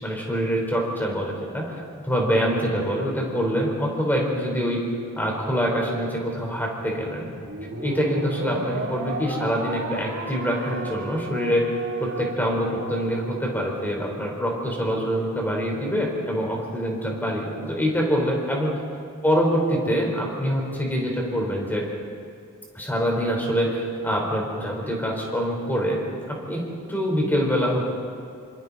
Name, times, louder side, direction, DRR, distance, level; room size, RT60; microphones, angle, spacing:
voice 1, 0.0-4.8 5.2-7.3 7.8-11.6 12.0-18.7 19.2-21.8 22.7-26.0 26.3-26.6 26.9-27.8, equal, 10° left, -1 dB, 4.4 m, -25 dB
sound 1, 7.4-13.9, right 2 dB, 75° right, 4.0 m, -34 dB
27.0 x 26.5 x 4.3 m, 2.3 s
head